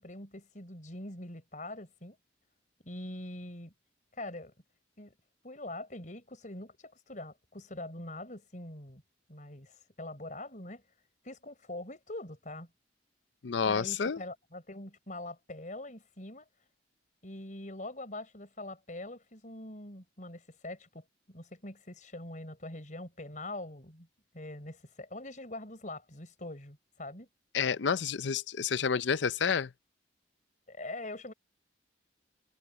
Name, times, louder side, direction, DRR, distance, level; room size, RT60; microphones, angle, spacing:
voice 1, 0.0-2.2 2.8-3.7 4.1-4.5 5.0-5.1 5.4-9.0 9.3-10.8 11.2-12.7 13.6-16.5 17.2-24.1 24.3-27.3 30.7-31.3, left 1 dB, 45° left, 4.9 m, -43 dB
voice 2, 13.4-14.2 27.5-29.7, left 6 dB, 75° left, 0.6 m, -29 dB
head